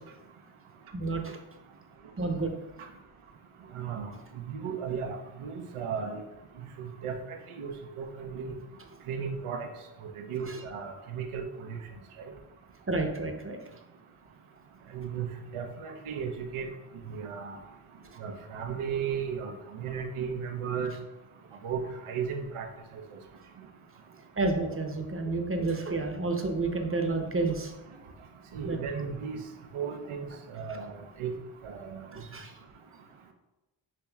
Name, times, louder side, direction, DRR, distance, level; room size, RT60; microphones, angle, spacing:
voice 1, 0.9-1.4 2.2-2.5 10.4-10.6 12.9-13.6 18.0-18.2 24.4-27.7 28.6-28.8 32.1-32.5, right 3 dB, 25° right, 4 dB, 0.8 m, -30 dB
voice 2, 3.7-4.1 4.5-6.2 6.8-7.7 8.0-8.5 9.1-9.7 10.3-11.8 14.9-15.3 15.5-16.7 17.1-17.6 18.2-19.5 19.8-20.9 21.6-22.7 28.5-29.4 29.7-30.9 31.2-31.3 31.6-32.0, right 6 dB, 80° right, 5 dB, 0.7 m, -35 dB
7.1 x 3.0 x 2.3 m, 1.0 s
supercardioid pair, 40°, 50 cm